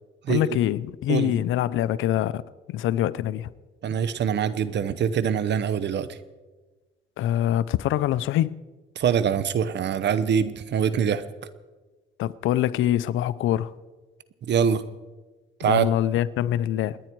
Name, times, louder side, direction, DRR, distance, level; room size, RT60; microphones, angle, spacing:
voice 1, 0.3-2.4 2.7-3.5 7.2-8.6 12.2-13.7 15.6-17.0, left 12 dB, 80° left, 0.6 m, -24 dB
voice 2, 3.8-6.2 9.0-11.2 14.5-14.8 15.6-15.9, right 7 dB, 60° right, 1.0 m, -24 dB
28.5 x 10.0 x 4.6 m
cardioid pair, 90°, 20 cm